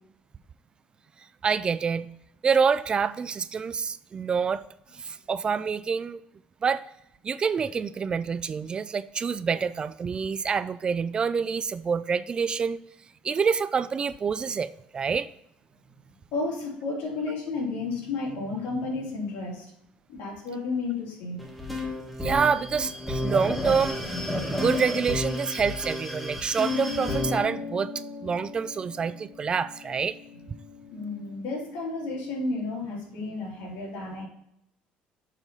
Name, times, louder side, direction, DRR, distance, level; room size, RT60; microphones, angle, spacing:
voice 1, 1.4-2.1 2.4-4.6 5.0-6.2 6.6-6.9 7.2-12.8 13.2-15.3 22.2-24.0 24.5-27.9 28.2-30.2, right 6 dB, 30° right, 15 dB, 0.3 m, -27 dB
voice 2, 16.3-19.7 20.1-21.5 30.9-34.3, left 3 dB, 75° left, -3 dB, 3.1 m, -32 dB
sound 1, 21.4-27.4, left 2 dB, ahead, 1.5 m, -31 dB
sound 2, 26.5-31.3, left 4 dB, 60° right, 2.1 m, -39 dB
7.0 x 4.0 x 5.4 m, 0.76 s
cardioid pair, 125°, 3 cm